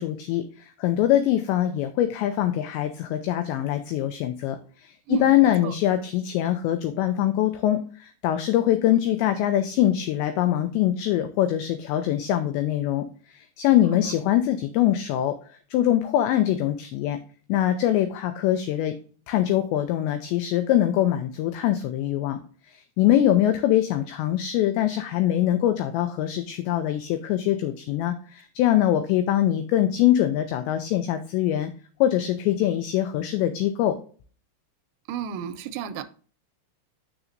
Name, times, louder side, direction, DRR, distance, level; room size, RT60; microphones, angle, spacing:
voice 1, 0.0-17.2 17.5-18.9 19.3-22.4 22.7-31.7 32.0-34.0, left 12 dB, 90° left, 8 dB, 2.5 m, -23 dB
voice 2, 35.1-36.0, right 10 dB, 90° right, 11 dB, 3.2 m, -31 dB
7.0 x 6.8 x 2.5 m, 0.41 s
omnidirectional pair, 5.7 m